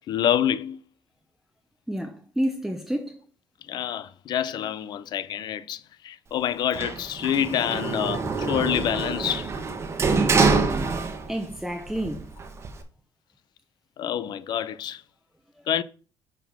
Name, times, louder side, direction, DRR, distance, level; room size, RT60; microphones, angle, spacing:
voice 1, 0.1-0.8 3.7-9.5 14.0-15.0 15.7-15.8, left 10 dB, 60° left, 0.5 m, -27 dB
voice 2, 1.9-3.2 11.3-12.3 15.6-15.7, equal, 5° right, 0.8 m, -29 dB
Sliding door, 6.7-11.5 11.9-12.8, right 4 dB, 35° right, 1.2 m, -25 dB
6.7 x 3.7 x 5.9 m
cardioid pair, 110°, 8 cm